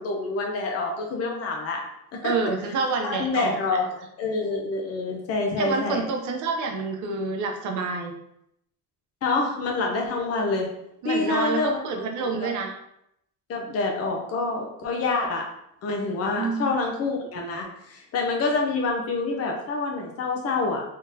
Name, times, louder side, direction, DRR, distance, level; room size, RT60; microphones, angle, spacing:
voice 1, 0.0-1.8 2.1-2.5 3.0-6.0 9.2-10.7 11.0-11.8 12.4-12.5 13.5-15.4 15.8-20.8, left 3 dB, 40° left, 1 dB, 0.6 m, -27 dB
voice 2, 2.2-3.8 5.6-8.1 11.0-12.7 16.4-16.7, right 4 dB, 50° right, 3 dB, 0.6 m, -28 dB
3.7 x 3.6 x 2.7 m, 0.78 s
cardioid pair, 175°, 40 cm